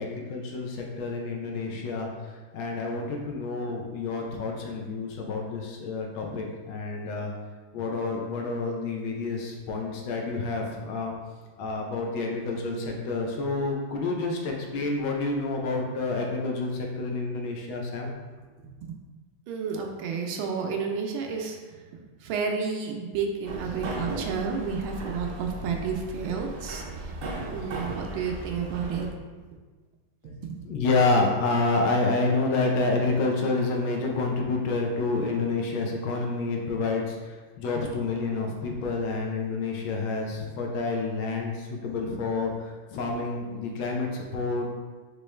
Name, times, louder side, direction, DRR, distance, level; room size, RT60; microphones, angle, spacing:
voice 1, 0.0-7.3 7.7-11.1 11.6-18.1 30.2-30.3 30.6-44.8, left 3 dB, 85° left, 1 dB, 1.5 m, -28 dB
voice 2, 19.5-21.6 22.2-26.8 27.5-29.1, right 5 dB, 85° right, 2 dB, 1.5 m, -30 dB
sound 1, 23.5-29.1, right 1 dB, 65° right, 0.8 m, -36 dB
5.1 x 3.1 x 3.2 m, 1.4 s
omnidirectional pair, 2.2 m